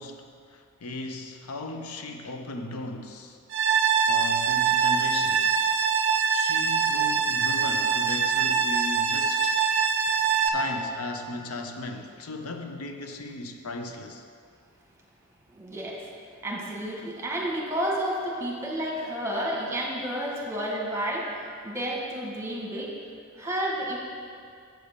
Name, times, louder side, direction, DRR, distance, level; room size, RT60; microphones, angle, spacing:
voice 1, 0.0-3.4 4.0-5.6 6.3-9.6 10.4-14.2, left 2 dB, 85° left, 5 dB, 0.7 m, -37 dB
sound 1, 3.5-10.5, right 6 dB, 55° right, 0.5 m, -23 dB
voice 2, 15.5-16.1 16.4-22.9 23.3-24.0, right 1 dB, 15° right, -3 dB, 1.4 m, -31 dB
7.6 x 7.0 x 5.1 m, 2.3 s
head